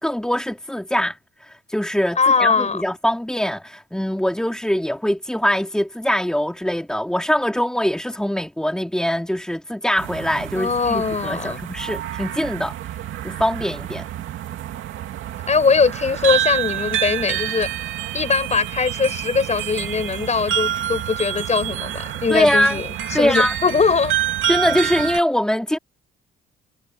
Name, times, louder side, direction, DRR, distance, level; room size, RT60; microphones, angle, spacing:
voice 1, 0.0-1.2 1.4-12.7 13.2-14.1 22.3-22.8 23.1-23.5 24.5-25.8, equal, 5° left, 3.2 m, -22 dB
voice 2, 2.2-2.8 10.5-11.6 15.5-17.7 18.1-24.1, left 5 dB, 35° left, 6.3 m, -21 dB
sound 1, 10.0-25.2, right 11 dB, 80° right, 2.7 m, -28 dB
cardioid pair, 90°, 20 cm